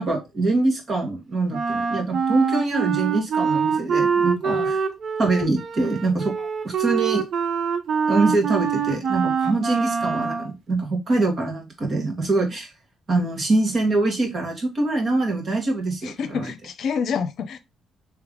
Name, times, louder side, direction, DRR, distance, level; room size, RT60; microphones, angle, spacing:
voice 1, 0.0-4.8 5.2-6.3 6.6-7.2 8.1-12.7 13.1-16.5, right 2 dB, 45° right, 1.7 m, -24 dB
Wind instrument woodwind instrument, 1.5-10.5, right 6 dB, 60° right, 0.7 m, -24 dB
voice 2, 4.4-4.7 9.4-9.6 16.0-17.6, left 6 dB, 65° left, 0.6 m, -28 dB
3.5 x 3.3 x 3.7 m
cardioid pair, 90°, 0 cm